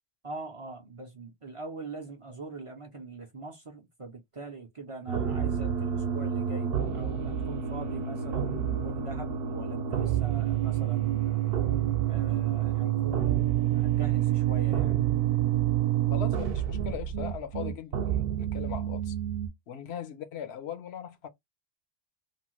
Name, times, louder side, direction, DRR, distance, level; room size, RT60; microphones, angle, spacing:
voice 1, 0.2-11.4 12.0-15.1, right 3 dB, 40° right, 0.5 m, -42 dB
sound 1, 5.1-19.5, right 11 dB, 70° right, 0.8 m, -28 dB
voice 2, 16.1-19.1 19.7-21.3, left 8 dB, 85° left, 0.9 m, -39 dB
3.0 x 2.1 x 2.9 m
omnidirectional pair, 1.1 m